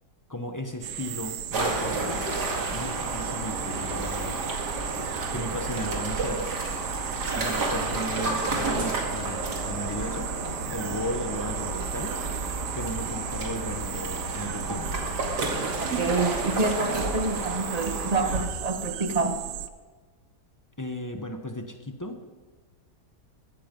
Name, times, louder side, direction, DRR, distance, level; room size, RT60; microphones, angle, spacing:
voice 1, 0.3-2.2 2.7-4.4 5.3-6.5 7.3-10.3 10.7-12.1 12.7-14.9 20.8-22.3, left 1 dB, 15° left, 5 dB, 0.7 m, -35 dB
sound 1, 0.8-19.7, right 11 dB, 85° right, 1.4 m, -37 dB
sound 2, 1.5-18.4, right 2 dB, 70° right, 2.7 m, -31 dB
voice 2, 16.0-19.4, right 3 dB, 25° right, 6 dB, 1.1 m, -27 dB
14.5 x 14.0 x 5.3 m, 1.4 s
omnidirectional pair, 1.8 m